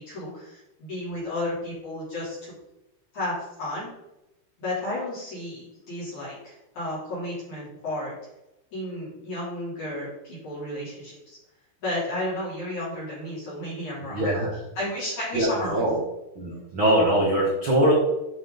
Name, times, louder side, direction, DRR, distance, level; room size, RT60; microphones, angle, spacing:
voice 1, 0.0-2.5 3.1-3.9 4.6-8.1 8.7-11.4 11.8-14.4 14.8-15.8, left 1 dB, 40° left, -7 dB, 4.3 m, -33 dB
voice 2, 14.1-14.5 15.3-16.0 16.3-17.9, right 1 dB, 80° right, -4 dB, 1.1 m, -22 dB
9.1 x 7.1 x 4.0 m, 0.92 s
omnidirectional pair, 5.6 m